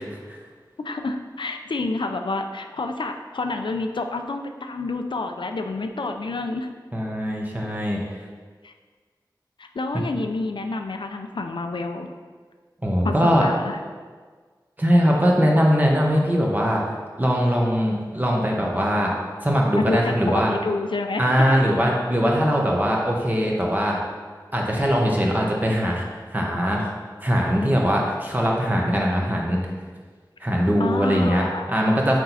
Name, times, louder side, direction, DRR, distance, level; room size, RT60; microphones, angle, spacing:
voice 1, 0.8-6.7 8.6-8.7 9.6-12.1 13.0-13.8 19.7-21.5 30.8-31.7, left 3 dB, 85° left, 5 dB, 0.5 m, -28 dB
voice 2, 6.9-8.0 12.8-13.4 14.8-16.8 17.2-19.1 19.4-20.5 21.2-24.0 24.5-26.1 26.3-26.9 27.2-29.6 30.4-32.2, equal, 20° right, -2 dB, 1.1 m, -21 dB
6.3 x 4.5 x 4.1 m, 1.5 s
wide cardioid pair, 60°, 8 cm